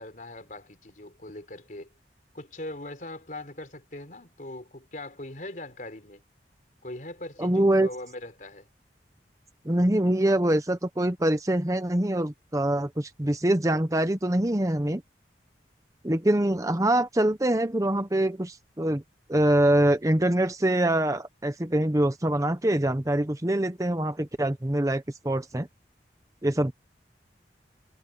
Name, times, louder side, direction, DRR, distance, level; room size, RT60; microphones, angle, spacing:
voice 1, 0.0-1.9 2.3-6.2 6.8-8.7, left 1 dB, 50° left, 4.0 m, -40 dB
voice 2, 7.4-7.9 9.6-15.0 16.0-19.0 19.3-25.7 26.4-26.7, right 1 dB, 20° right, 0.9 m, -24 dB
head